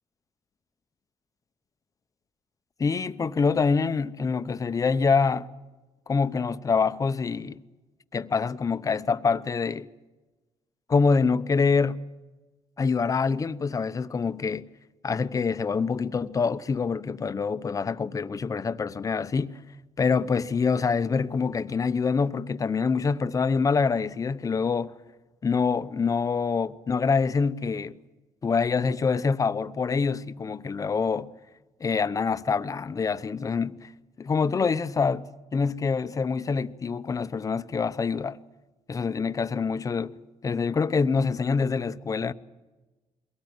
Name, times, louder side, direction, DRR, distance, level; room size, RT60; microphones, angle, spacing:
voice 1, 2.8-5.5 6.1-7.6 8.1-9.9 10.9-12.0 12.8-14.7 15.0-19.6 20.0-24.9 25.4-28.0 28.4-31.3 31.8-33.9 34.2-38.4 38.9-40.1 40.4-42.3, left 5 dB, 30° left, 0.8 m, -25 dB
23.0 x 18.0 x 9.6 m
cardioid pair, 105°, 11 cm